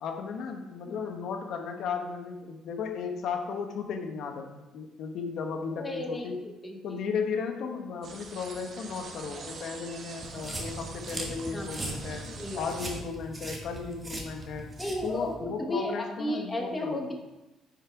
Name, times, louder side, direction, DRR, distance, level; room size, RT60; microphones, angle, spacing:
voice 1, 0.0-6.4 6.8-12.3 12.5-14.7 15.0-17.0, left 5 dB, 60° left, 4 dB, 1.0 m, -35 dB
voice 2, 0.9-1.2 5.8-7.0 7.6-7.7 11.5-11.7 12.2-12.7 14.8-17.1, left 1 dB, 10° left, 1 dB, 1.0 m, -34 dB
sound 1, 8.0-13.0, right 4 dB, 45° right, 1.0 m, -44 dB
sound 2, 10.2-15.3, right 1 dB, 15° right, 1.3 m, -39 dB
9.5 x 5.3 x 4.6 m, 1.0 s
cardioid pair, 155°, 0 cm